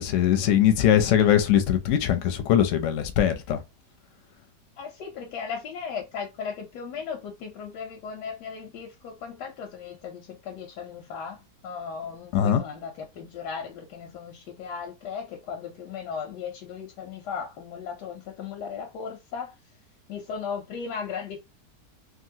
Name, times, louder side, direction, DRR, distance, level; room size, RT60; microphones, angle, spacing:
voice 1, 0.0-3.6 12.3-12.6, left 10 dB, 65° left, 0.8 m, -21 dB
voice 2, 4.8-11.4 11.6-19.5 20.1-21.4, left 6 dB, 90° left, 1.3 m, -36 dB
2.9 x 2.5 x 2.7 m
omnidirectional pair, 1.7 m